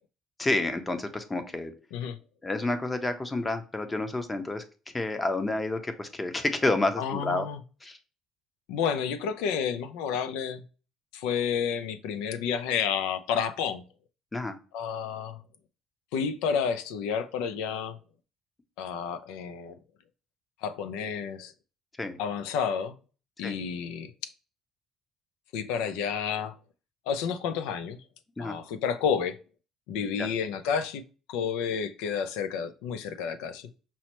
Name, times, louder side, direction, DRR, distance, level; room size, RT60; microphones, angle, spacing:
voice 1, 0.4-1.7 2.4-4.6 4.9-7.5 7.8-8.0 14.3-14.5 22.0-22.2 23.4-23.5 28.4-28.6 30.2-30.3, left 2 dB, 15° left, 0.6 m, -29 dB
voice 2, 7.0-7.6 8.7-10.6 11.1-13.8 14.7-15.4 16.1-18.0 18.8-19.8 20.6-21.5 22.2-23.0 23.4-24.1 25.5-26.5 27.1-28.0 28.4-29.4 29.9-31.0 31.3-33.7, left 7 dB, 90° left, 0.4 m, -30 dB
5.4 x 2.1 x 2.9 m
cardioid pair, 100°, 0 cm